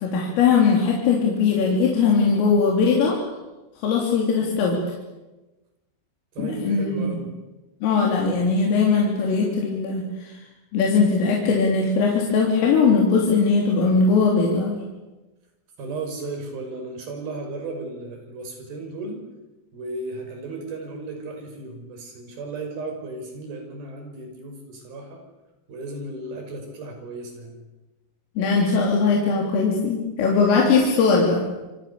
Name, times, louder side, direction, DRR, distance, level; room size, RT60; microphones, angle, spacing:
voice 1, 0.0-3.2 3.8-4.8 6.4-7.1 7.8-10.4 10.7-14.9 28.4-31.4, left 5 dB, 75° left, -1 dB, 5.9 m, -20 dB
voice 2, 6.4-7.3 15.8-19.2 19.7-25.2 25.7-27.6, right 3 dB, 45° right, 4 dB, 7.1 m, -35 dB
28.0 x 26.5 x 7.1 m, 1.1 s
omnidirectional pair, 5.9 m